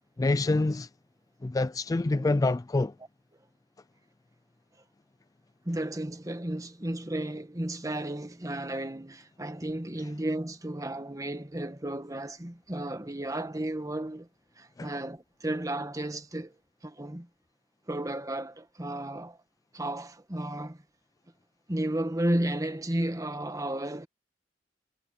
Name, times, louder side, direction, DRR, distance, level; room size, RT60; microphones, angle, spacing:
voice 1, 0.2-0.9 1.4-2.9 14.8-14.9, left 2 dB, 20° left, 0.3 m, -26 dB
voice 2, 5.6-14.3 14.6-16.5 16.8-17.3 17.9-19.4 19.7-20.8 21.7-24.1, right 1 dB, 20° right, 1.5 m, -33 dB
head